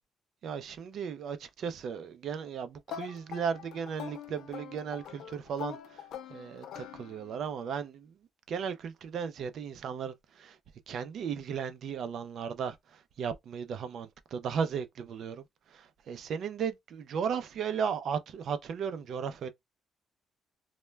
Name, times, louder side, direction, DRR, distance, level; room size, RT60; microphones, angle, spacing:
voice 1, 0.4-6.0 6.3-8.2 8.5-10.6 10.9-19.5, right 7 dB, 60° right, 0.4 m, -36 dB
sound 1, 2.9-7.5, left 10 dB, 85° left, 0.4 m, -44 dB
2.1 x 2.1 x 3.1 m
cardioid pair, 150°, 0 cm